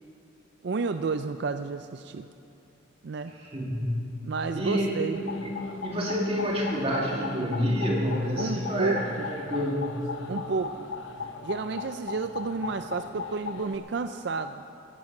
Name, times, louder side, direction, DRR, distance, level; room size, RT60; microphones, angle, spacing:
voice 1, 0.6-2.3 3.0-3.3 4.2-5.2 8.4-9.3 10.3-10.9 11.4-14.6, right 4 dB, 55° right, 9 dB, 0.4 m, -31 dB
voice 2, 3.4-4.2 4.6-4.9 5.4-9.0 9.3-10.0, equal, 30° right, -2 dB, 2.4 m, -28 dB
sound 1, 5.1-13.8, left 5 dB, 75° left, 1.0 m, -38 dB
16.0 x 14.0 x 6.0 m, 2.8 s
head